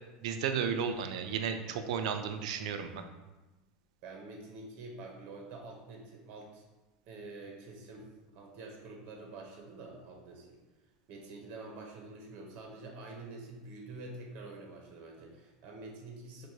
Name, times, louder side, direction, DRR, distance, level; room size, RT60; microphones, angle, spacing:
voice 1, 0.2-3.0, right 7 dB, 85° right, 7 dB, 0.4 m, -33 dB
voice 2, 4.0-6.6 7.1-10.6 11.1-16.5, right 2 dB, 55° right, 1 dB, 0.7 m, -47 dB
4.5 x 2.2 x 2.7 m, 1.1 s
supercardioid pair, 125°, 3 cm